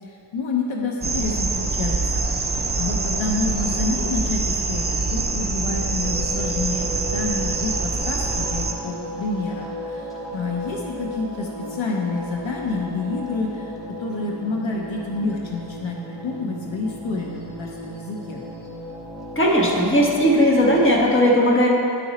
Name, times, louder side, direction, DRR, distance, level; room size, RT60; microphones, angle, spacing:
voice 1, 0.0-18.4, left 3 dB, 70° left, -1 dB, 0.8 m, -28 dB
sound 1, 1.0-8.7, right 3 dB, 20° right, 0.5 m, -25 dB
sound 2, 5.4-21.1, equal, ahead, 1.4 m, -36 dB
voice 2, 19.3-21.7, equal, 25° left, -3 dB, 1.3 m, -17 dB
10.0 x 4.9 x 4.1 m, 3.0 s
wide cardioid pair, 95°, 48 cm